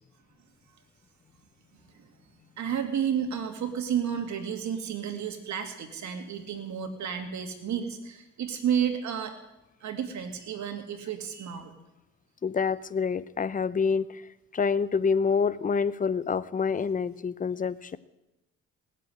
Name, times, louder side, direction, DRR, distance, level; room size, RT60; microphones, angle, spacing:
voice 1, 2.6-9.3 9.8-11.7, right 8 dB, 70° right, 6 dB, 2.4 m, -31 dB
voice 2, 12.4-14.2 14.5-18.0, left 5 dB, 25° left, 17 dB, 0.6 m, -27 dB
18.5 x 7.6 x 9.2 m, 0.97 s
cardioid pair, 90°, 30 cm